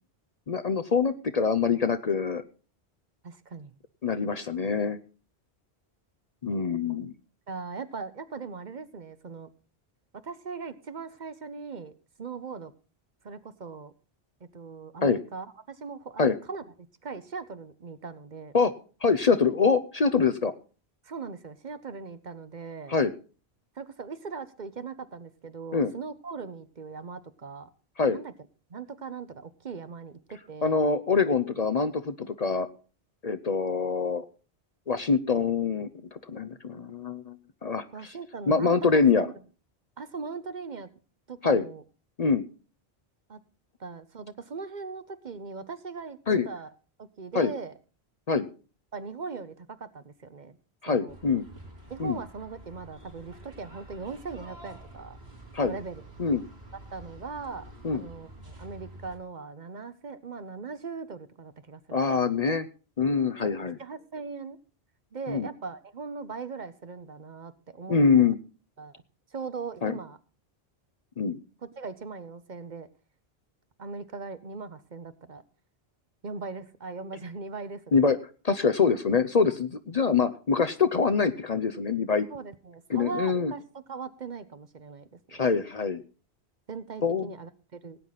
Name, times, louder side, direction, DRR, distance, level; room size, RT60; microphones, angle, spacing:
voice 1, 0.5-2.4 4.0-5.0 6.4-7.1 15.0-15.2 16.2-16.3 18.5-18.7 19.0-20.5 22.9-23.1 25.7-25.9 28.0-28.2 30.6-32.7 33.2-34.3 34.9-37.4 37.6-38.1 38.5-39.3 41.4-41.6 42.2-42.5 46.3-46.5 47.3-47.5 48.3-48.5 50.8-51.5 52.0-52.2 55.5-55.7 56.2-56.4 57.8-58.0 61.9-62.7 63.0-63.8 65.3-65.5 67.9-68.4 69.8-69.9 71.2-71.4 77.9-78.2 78.4-82.3 82.9-83.5 85.3-86.0 87.0-87.3, left 5 dB, 45° left, 10 dB, 0.7 m, -24 dB
voice 2, 3.2-3.7 7.5-9.5 10.1-11.9 12.2-12.7 13.2-13.9 14.4-16.6 17.0-18.5 21.0-22.9 23.8-27.7 28.1-28.3 28.7-30.8 37.9-39.3 40.0-40.9 41.3-41.8 43.3-43.4 43.8-46.7 47.0-47.7 48.9-50.6 50.9-51.2 51.9-55.2 55.6-56.0 56.9-62.1 63.4-64.6 65.1-68.0 68.8-68.9 69.3-70.2 71.6-72.9 73.8-75.4 76.2-78.0 82.3-85.4 86.7-88.0, right 4 dB, 50° right, 13 dB, 0.9 m, -39 dB
sound 1, 51.1-59.2, right 1 dB, 75° right, 4.3 m, -48 dB
17.5 x 9.0 x 4.0 m, 0.36 s
omnidirectional pair, 1.1 m